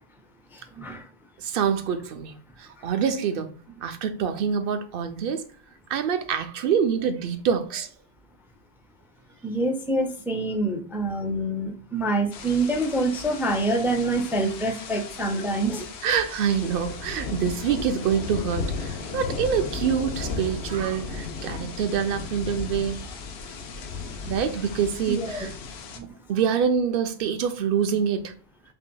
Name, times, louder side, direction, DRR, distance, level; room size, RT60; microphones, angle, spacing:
voice 1, 0.5-1.0 9.4-15.9 21.5-21.6 25.1-25.5 25.9-26.1, right 2 dB, 5° right, 0.3 m, -26 dB
voice 2, 1.4-2.3 2.6-3.5 3.8-5.4 5.9-7.9 16.0-23.0 24.3-25.5 26.3-28.3, right 7 dB, 65° right, 0.7 m, -26 dB
sound 1, 12.3-26.0, left 4 dB, 80° left, 0.9 m, -35 dB
5.6 x 2.6 x 2.2 m
omnidirectional pair, 1.1 m